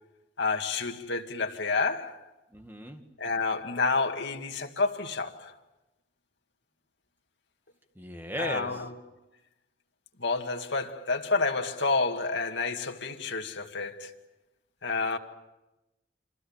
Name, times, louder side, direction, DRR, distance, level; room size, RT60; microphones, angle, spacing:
voice 1, 0.4-2.2 3.2-5.5 8.4-8.9 10.2-14.1 14.8-15.2, left 3 dB, 75° left, 2.2 m, -29 dB
voice 2, 2.5-3.0 8.0-8.8, equal, 10° right, 2.0 m, -36 dB
29.5 x 25.5 x 7.4 m
head